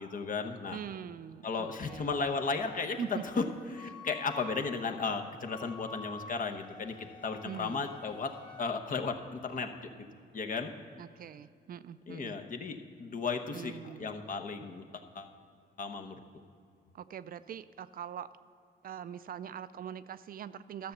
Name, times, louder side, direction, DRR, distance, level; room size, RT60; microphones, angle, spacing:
voice 1, 0.0-0.8 1.4-3.4 3.7-9.9 10.3-10.7 12.1-13.7 14.0-15.3 15.8-16.2, left 4 dB, 50° left, 5 dB, 0.9 m, -35 dB
voice 2, 0.7-2.1 3.0-3.2 7.4-7.9 11.0-12.4 13.5-14.2 16.9-18.3 18.8-20.9, right 9 dB, 55° right, 14 dB, 0.4 m, -43 dB
Wind instrument woodwind instrument, 1.9-8.7, left 2 dB, 25° left, 2.1 m, -50 dB
12.5 x 6.9 x 6.6 m, 2.3 s
cardioid pair, 95°, 18 cm